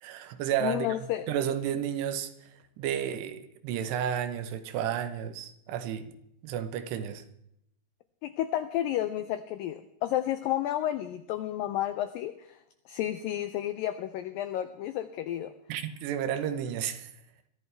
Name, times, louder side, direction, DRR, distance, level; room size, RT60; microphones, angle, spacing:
voice 1, 0.0-6.1 6.4-7.2 15.7-17.1, right 9 dB, 80° right, 10 dB, 3.1 m, -32 dB
voice 2, 0.6-1.3 8.2-12.6 12.9-15.5, left 12 dB, 90° left, 10 dB, 2.0 m, -31 dB
22.5 x 14.0 x 3.4 m, 0.78 s
omnidirectional pair, 4.8 m